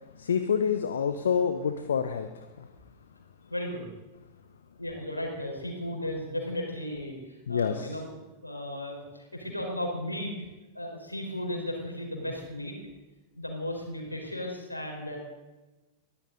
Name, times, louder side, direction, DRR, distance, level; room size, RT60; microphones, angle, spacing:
voice 1, 0.2-2.7 7.5-8.0, left 7 dB, 65° left, 8 dB, 1.0 m, -28 dB
voice 2, 3.5-3.9 4.8-8.1 8.4-10.3 10.7-12.8 13.3-15.2, left 1 dB, 85° left, 1 dB, 4.4 m, -35 dB
22.5 x 16.0 x 4.0 m, 1.1 s
figure-of-eight pair, 90°, 0 cm